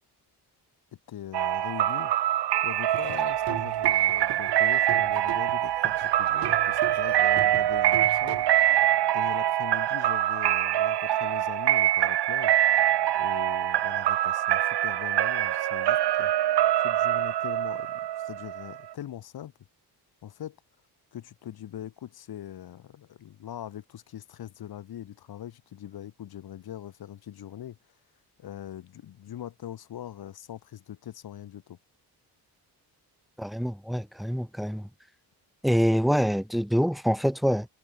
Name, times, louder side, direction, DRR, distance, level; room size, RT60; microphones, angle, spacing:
voice 1, 1.1-2.1 2.6-8.5 9.1-12.6 13.1-16.3 16.8-19.5 20.2-20.6 21.1-27.8 28.4-31.8, left 11 dB, 65° left, 5.6 m, -41 dB
sound 1, 1.3-18.9, right 13 dB, 75° right, 2.9 m, -24 dB
Laughter / Drum, 2.9-8.9, right 11 dB, 60° right, 2.6 m, -39 dB
voice 2, 33.4-34.9 35.6-37.7, equal, ahead, 2.3 m, -25 dB
cardioid pair, 165°, 40 cm